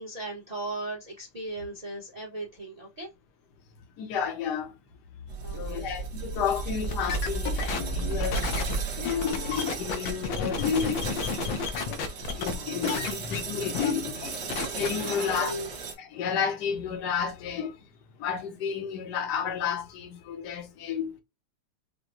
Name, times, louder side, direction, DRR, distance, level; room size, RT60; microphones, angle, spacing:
voice 1, 0.0-3.1 5.4-5.8 14.9-15.7, right 2 dB, 25° right, 0.9 m, -37 dB
voice 2, 4.0-4.7 5.5-8.6 9.0-11.5 11.8-12.0 12.3-15.5 16.0-17.8 18.2-21.2, left 7 dB, 60° left, 1.4 m, -31 dB
sound 1, 5.3-15.9, right 4 dB, 60° right, 1.7 m, -35 dB
sound 2, 6.8-12.6 12.8-13.4 13.7-13.9 14.2-14.9, left 5 dB, 75° left, 1.5 m, -31 dB
5.9 x 2.2 x 2.6 m
omnidirectional pair, 2.2 m